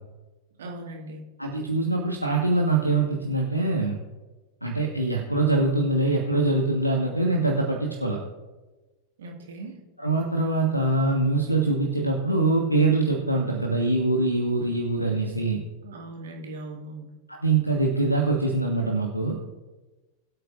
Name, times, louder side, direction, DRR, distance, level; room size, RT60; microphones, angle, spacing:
voice 1, 0.6-1.2 9.2-9.8 15.8-17.1, right 2 dB, 65° right, 1 dB, 1.8 m, -39 dB
voice 2, 1.4-4.0 4.6-8.2 10.0-15.6 17.3-19.4, right 2 dB, 90° right, -2 dB, 1.2 m, -23 dB
21.5 x 8.0 x 2.5 m, 1.2 s
figure-of-eight pair, 90°, 0 cm